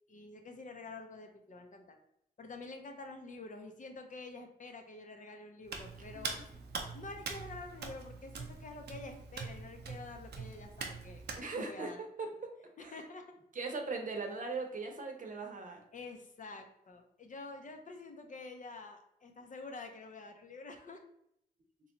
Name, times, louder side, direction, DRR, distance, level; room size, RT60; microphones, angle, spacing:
voice 1, 0.1-2.0 2.4-6.4 6.9-11.2 11.5-12.0 12.8-13.3 15.9-21.0, left 3 dB, 50° left, 5 dB, 0.6 m, -48 dB
Hands, 5.7-11.4, right 4 dB, 85° right, 0.5 m, -43 dB
voice 2, 6.1-6.4 11.3-12.5 12.8-13.0 13.5-15.8, right 3 dB, 55° right, 3 dB, 0.7 m, -40 dB
3.0 x 2.3 x 3.8 m, 0.75 s
cardioid pair, 75°, 17 cm